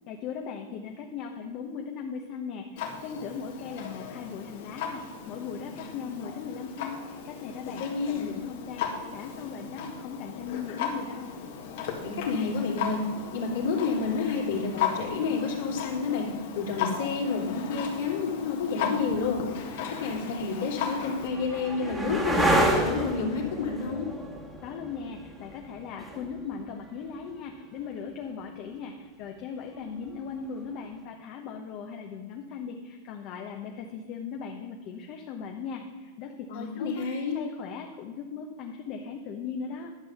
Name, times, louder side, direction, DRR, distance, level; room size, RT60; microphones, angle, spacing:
voice 1, 0.1-11.3 24.6-37.1 37.3-39.9, left 6 dB, 45° left, 2 dB, 1.0 m, -38 dB
Clock, 2.8-21.3, left 7 dB, 65° left, 1.8 m, -36 dB
voice 2, 7.8-8.4 12.0-13.0 13.3-16.3 16.5-19.4 20.0-22.5 22.8-24.1 36.5-37.4, left 4 dB, 80° left, -4 dB, 2.7 m, -29 dB
sound 1, 20.1-27.8 30.1-30.6, right 1 dB, 10° right, 1.5 m, -30 dB
11.0 x 5.5 x 6.7 m, 1.5 s
supercardioid pair, 135°, 0 cm